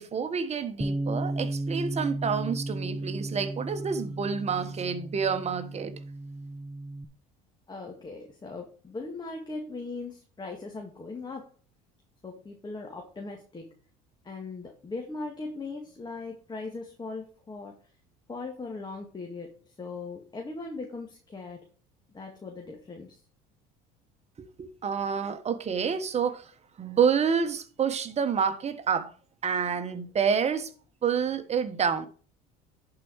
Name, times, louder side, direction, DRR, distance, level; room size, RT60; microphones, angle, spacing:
voice 1, 0.0-5.9 24.4-26.5 26.8-29.1 29.4-30.7 31.0-32.1, right 6 dB, 35° right, 1.3 m, -28 dB
Bass guitar, 0.8-7.1, right 2 dB, ahead, 0.8 m, -34 dB
voice 2, 7.7-11.5 12.2-13.8 14.2-17.8 18.3-21.7 22.1-23.2, left 3 dB, 20° left, 2.0 m, -39 dB
11.0 x 4.9 x 4.7 m
supercardioid pair, 85°, 19 cm